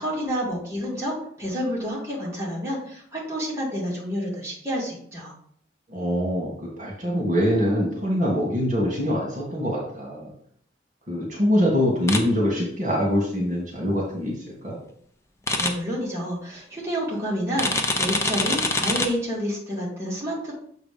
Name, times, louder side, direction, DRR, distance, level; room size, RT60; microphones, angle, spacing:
voice 1, 0.0-5.3 15.6-20.6, equal, 15° right, -6 dB, 2.3 m, -29 dB
voice 2, 5.9-10.3 11.1-14.3 14.6-14.8, equal, 45° right, -3 dB, 2.2 m, -24 dB
sound 1, 12.1-12.2 15.5-15.7 17.6-19.1, left 2 dB, 15° left, 0.7 m, -24 dB
7.3 x 3.9 x 5.2 m, 0.62 s
head